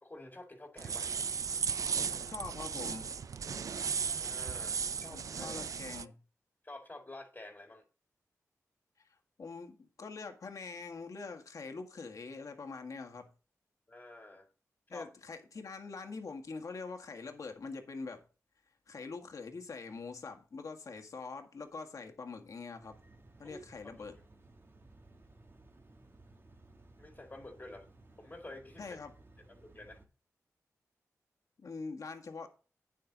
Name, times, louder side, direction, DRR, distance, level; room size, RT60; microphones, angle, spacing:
voice 1, 0.0-1.2 4.1-5.7 6.6-7.8 13.9-14.5 14.9-15.1 23.4-23.9 27.0-27.9 28.2-29.0 29.5-30.0, left 2 dB, 30° left, 3 dB, 2.0 m, -49 dB
sound 1, 0.8-6.0, right 6 dB, 70° right, 0.4 m, -36 dB
voice 2, 2.3-3.1 5.0-6.2 9.0-9.1 9.4-13.3 14.9-18.2 18.9-23.0 23.4-24.2 28.8-29.1 31.6-32.5, left 4 dB, 70° left, 4 dB, 1.8 m, -44 dB
sound 2, 22.8-30.1, right 2 dB, 40° right, 1.7 m, -59 dB
9.4 x 7.7 x 4.0 m, 0.35 s
cardioid pair, 55°, 6 cm